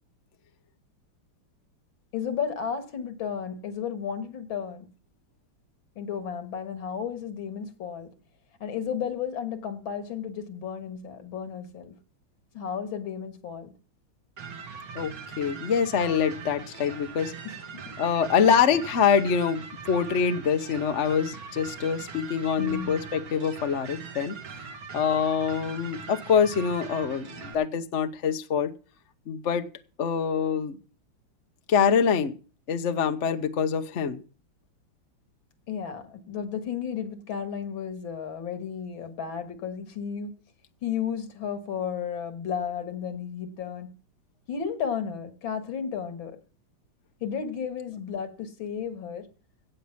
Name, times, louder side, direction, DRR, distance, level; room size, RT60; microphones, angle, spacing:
voice 1, 2.1-4.9 6.0-8.1 8.6-12.0 12.5-13.7 17.4-18.0 22.6-23.0 35.7-40.3 40.8-43.9 44.5-46.4 47.2-49.3, left 7 dB, 70° left, 2.3 m, -33 dB
sound 1, 14.4-27.5, right 5 dB, 70° right, 2.7 m, -41 dB
voice 2, 14.9-17.3 18.0-24.3 24.9-28.7 29.3-29.6 30.0-30.8 31.7-32.3 32.7-34.2, left 7 dB, 45° left, 1.0 m, -25 dB
17.0 x 6.8 x 5.9 m
omnidirectional pair, 2.3 m